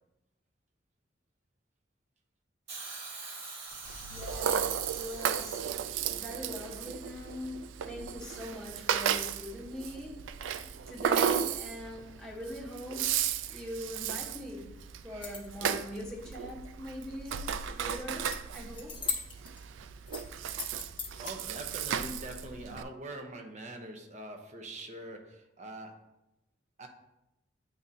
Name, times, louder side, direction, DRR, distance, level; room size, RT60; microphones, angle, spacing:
Hiss, 2.7-6.8 7.8-7.9, right 3 dB, 60° right, 2.0 m, -45 dB
Rattle (instrument), 3.9-22.8, right 8 dB, 85° right, 0.3 m, -34 dB
voice 1, 4.1-19.0, left 1 dB, 5° left, -5 dB, 1.1 m, -43 dB
sound 1, 15.0-15.6 18.2-18.4 18.7-19.6 20.1-21.3, left 5 dB, 25° left, 1.0 m, -38 dB
voice 2, 21.2-26.1 26.8-26.9, right 1 dB, 40° right, 3 dB, 0.8 m, -43 dB
9.4 x 3.7 x 2.8 m, 0.88 s
head